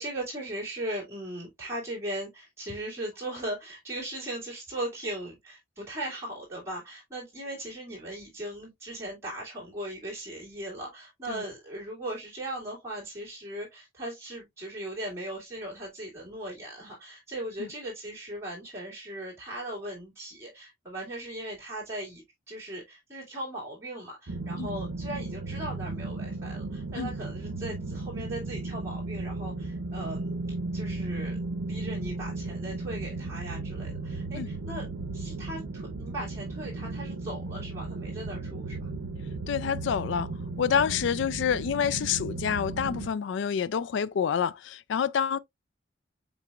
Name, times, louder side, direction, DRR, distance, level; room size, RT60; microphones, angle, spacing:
voice 1, 0.0-30.3 30.7-31.4 31.7-34.9 35.1-38.9, right 1 dB, 15° right, 2.3 m, -38 dB
sound 1, 24.3-43.1, right 2 dB, 85° right, 0.6 m, -35 dB
voice 2, 39.5-40.3 40.6-45.4, left 7 dB, 65° left, 0.3 m, -27 dB
5.8 x 4.0 x 2.2 m
head